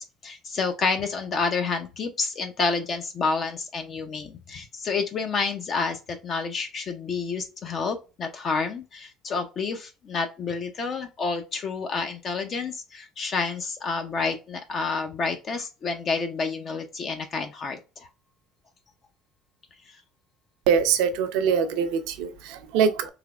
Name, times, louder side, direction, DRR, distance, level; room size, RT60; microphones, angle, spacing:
voice 1, 0.2-18.1 19.9-20.0, left 4 dB, 45° left, 0.5 m, -29 dB
voice 2, 20.7-23.1, right 7 dB, 75° right, 0.5 m, -23 dB
3.2 x 2.9 x 2.3 m
hypercardioid pair, 75°, 0 cm